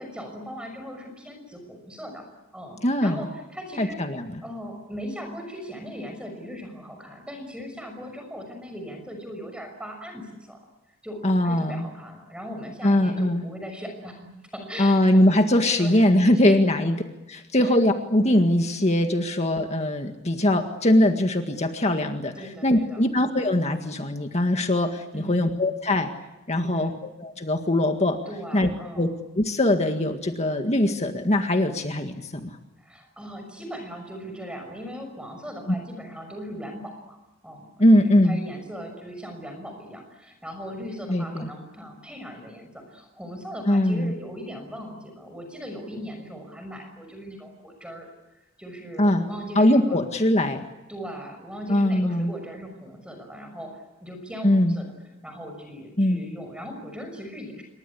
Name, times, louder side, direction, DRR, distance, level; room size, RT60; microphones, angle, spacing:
voice 1, 0.0-2.2 2.5-4.0 4.4-10.6 10.9-15.2 15.6-16.6 17.6-17.8 22.4-23.1 25.1-25.5 26.5-26.9 28.3-29.1 32.8-50.0 50.9-54.9 55.2-57.6, equal, 5° right, 4 dB, 6.0 m, -39 dB
voice 2, 2.8-3.2 3.8-4.4 11.2-11.8 12.8-13.4 14.8-17.0 17.3-22.3 22.6-26.1 26.5-26.9 27.2-28.2 28.5-28.7 29.0-29.1 29.4-32.6 35.7-35.8 37.8-38.4 41.1-41.5 43.7-44.1 49.0-49.2 49.6-50.6 51.7-52.3 54.4-54.7 56.0-56.2, left 1 dB, 35° left, 5 dB, 1.9 m, -21 dB
28.0 x 24.0 x 8.6 m, 1.0 s
head